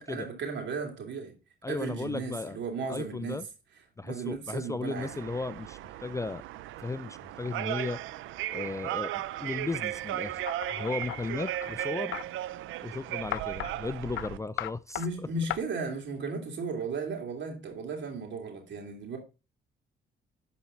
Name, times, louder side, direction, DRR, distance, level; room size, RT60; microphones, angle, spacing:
voice 1, 0.0-1.4 1.7-3.4 4.0-5.1 15.0-19.2, right 4 dB, 65° right, 3.0 m, -35 dB
voice 2, 1.6-2.6 2.9-3.5 4.0-6.4 6.8-8.0 8.5-10.4 10.7-12.2 12.8-15.0, left 3 dB, 15° left, 0.4 m, -35 dB
sound 1, 5.0-14.4, right 14 dB, 85° right, 0.5 m, -36 dB
sound 2, 10.5-12.3 13.3-13.7 14.2-14.3 14.6-15.1 15.5-15.6, left 14 dB, 75° left, 0.5 m, -36 dB
12.5 x 4.4 x 4.0 m
cardioid pair, 90°, 20 cm